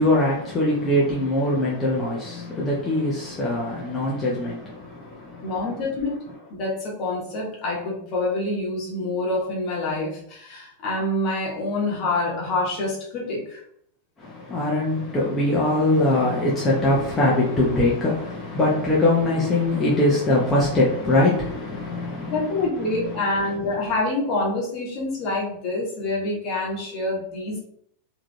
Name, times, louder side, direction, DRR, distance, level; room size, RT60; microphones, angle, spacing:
voice 1, 0.0-5.6 14.2-22.4 22.9-23.2, left 1 dB, 15° left, 0.8 m, -22 dB
voice 2, 5.4-13.6 22.3-27.6, left 2 dB, 40° left, 1.2 m, -26 dB
3.6 x 2.9 x 2.3 m
figure-of-eight pair, 90°, 0 cm